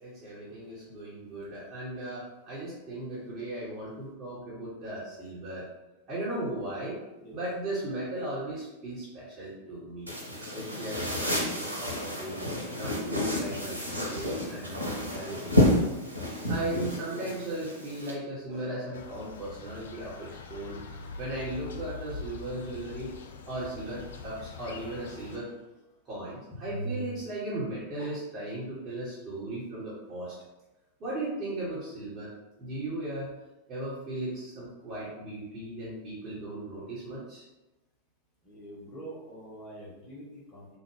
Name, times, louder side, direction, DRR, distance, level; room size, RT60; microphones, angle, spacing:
voice 1, 0.0-5.7 6.1-7.0 7.3-10.1 10.5-12.4 12.8-13.8 14.1-15.8 16.5-20.8 21.2-23.1 23.5-25.5 26.1-30.3 31.0-32.3 32.6-33.3 33.7-37.4, right 1 dB, 30° right, -11 dB, 1.3 m, -37 dB
sound 1, 10.1-18.1, left 1 dB, 90° left, 0.7 m, -30 dB
sound 2, 18.9-25.4, left 5 dB, 65° left, 0.4 m, -43 dB
voice 2, 38.4-40.7, right 1 dB, 30° left, -4 dB, 1.1 m, -45 dB
3.7 x 2.5 x 3.2 m, 1.0 s
figure-of-eight pair, 90°, 0 cm